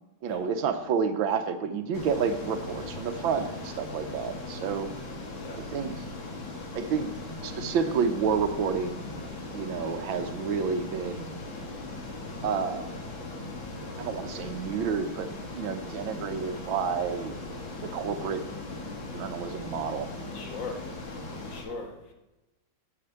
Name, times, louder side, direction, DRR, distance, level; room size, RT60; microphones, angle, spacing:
voice 1, 0.2-4.9 5.6-5.9 6.7-7.1 7.4-9.0 9.5-11.3 12.4-13.1 14.0-15.3 15.5-17.3 17.8-18.5 19.1-20.1, right 6 dB, 90° right, 1.8 m, -30 dB
Ocean, 1.9-21.6, left 2 dB, 90° left, 2.8 m, -39 dB
voice 2, 5.4-5.7 20.3-20.9 21.5-22.1, left 3 dB, 70° left, 2.4 m, -39 dB
8.7 x 8.4 x 8.1 m
omnidirectional pair, 2.1 m